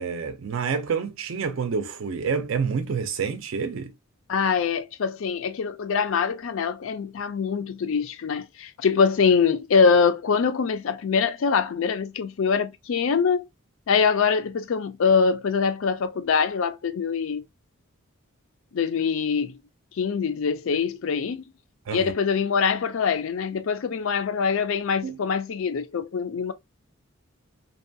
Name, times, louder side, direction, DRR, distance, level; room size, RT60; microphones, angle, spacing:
voice 1, 0.0-3.9 21.9-22.1 25.0-25.2, right 5 dB, 65° right, 0.4 m, -28 dB
voice 2, 4.3-13.5 13.9-17.4 18.7-19.6 20.0-21.4 21.9-26.5, left 5 dB, 65° left, 0.4 m, -24 dB
2.6 x 2.2 x 2.6 m
head